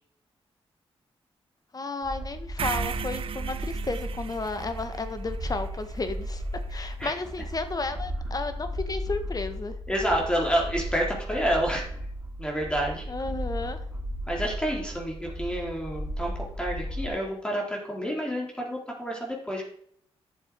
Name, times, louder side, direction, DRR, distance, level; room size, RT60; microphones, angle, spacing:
voice 1, 1.7-6.4 6.7-9.7 13.1-13.8, left 3 dB, 35° left, 9 dB, 1.6 m, -33 dB
sound 1, 2.0-17.1, equal, 10° right, 2.6 m, -35 dB
sound 2, 2.6-6.7, right 8 dB, 60° right, 0.5 m, -37 dB
voice 2, 6.8-7.1 9.9-11.8 12.4-13.0 14.3-16.3 16.6-19.7, equal, 10° left, -1 dB, 3.6 m, -29 dB
11.5 x 6.9 x 4.8 m, 0.66 s
cardioid pair, 65°, 11 cm